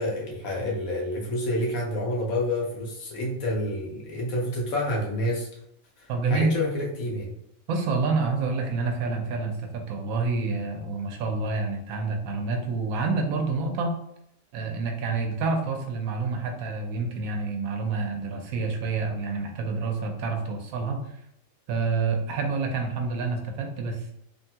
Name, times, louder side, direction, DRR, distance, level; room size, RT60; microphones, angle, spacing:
voice 1, 0.0-5.5 6.0-7.3, left 1 dB, 90° left, -2 dB, 1.3 m, -28 dB
voice 2, 6.1-6.5 7.7-13.9 14.5-21.0 21.7-24.1, right 4 dB, 85° right, 3 dB, 1.0 m, -28 dB
3.1 x 2.2 x 2.7 m, 0.77 s
omnidirectional pair, 1.4 m